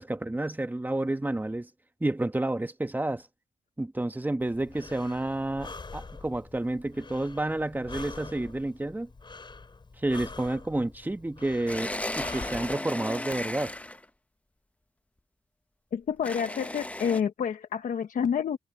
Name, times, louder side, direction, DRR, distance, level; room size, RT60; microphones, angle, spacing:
voice 1, 0.0-1.7 2.0-3.2 3.8-9.1 10.0-11.9 12.2-13.7, right 2 dB, 15° right, 1.4 m, -30 dB
Breathing, 4.4-12.8, left 3 dB, 35° left, 5.9 m, -45 dB
sound 1, 11.7-14.1 16.2-17.2, left 1 dB, 10° left, 1.0 m, -35 dB
voice 2, 15.9-18.6, left 7 dB, 80° left, 1.1 m, -28 dB
cardioid pair, 95°, 13 cm